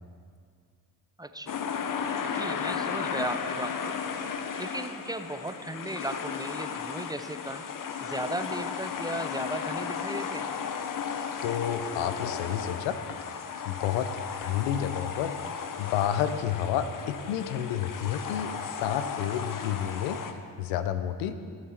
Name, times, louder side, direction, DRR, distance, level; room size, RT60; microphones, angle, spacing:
voice 1, 1.2-1.5 2.3-4.0 4.6-7.6 8.0-10.5, right 1 dB, 10° right, 9 dB, 0.6 m, -36 dB
sound 1, 1.5-20.3, left 6 dB, 50° left, 0.9 m, -35 dB
voice 2, 11.4-13.0 13.6-15.3 15.8-20.2 20.6-21.4, left 10 dB, 90° left, 11 dB, 0.6 m, -30 dB
15.5 x 7.2 x 4.3 m, 2.1 s
supercardioid pair, 50°, 40 cm